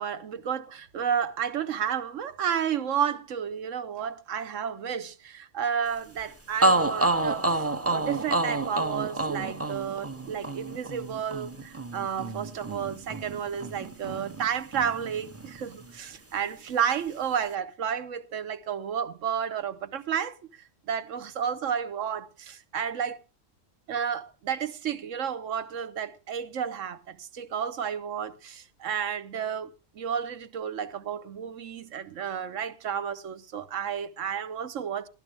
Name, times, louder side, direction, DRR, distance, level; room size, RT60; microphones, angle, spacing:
voice 1, 0.0-7.6 7.9-20.3 20.9-23.2 23.9-35.1, right 8 dB, 80° right, 1.3 m, -31 dB
sound 1, 6.2-6.3 6.6-14.5 14.7-15.9, right 2 dB, 15° right, 0.6 m, -29 dB
18.5 x 12.0 x 3.3 m
omnidirectional pair, 1.3 m